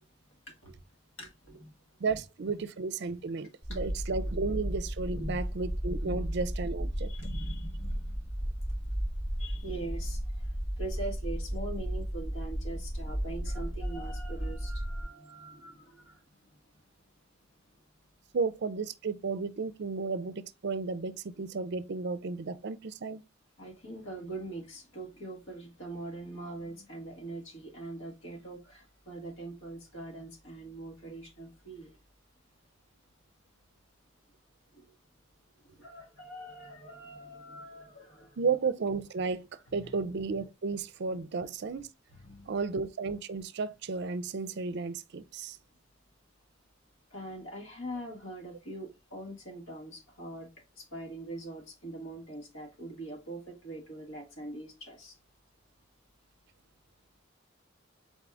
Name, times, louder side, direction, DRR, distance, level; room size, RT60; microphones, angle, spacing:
voice 1, 1.2-1.7 2.1-2.2 3.7-4.0 5.1-5.4 6.0-6.2 7.0-8.2 9.4-10.2 10.8-16.2 23.6-31.9 34.7-34.8 35.6-38.5 39.7-39.9 42.2-42.5 47.1-50.5 50.8-55.1, right 2 dB, 70° left, 1.6 m, -43 dB
voice 2, 2.0-7.1 18.3-23.2 38.4-41.9 42.5-45.6, right 4 dB, 55° right, 0.5 m, -33 dB
sound 1, 3.6-15.0, equal, 45° left, 1.7 m, -34 dB
4.1 x 3.6 x 3.4 m
head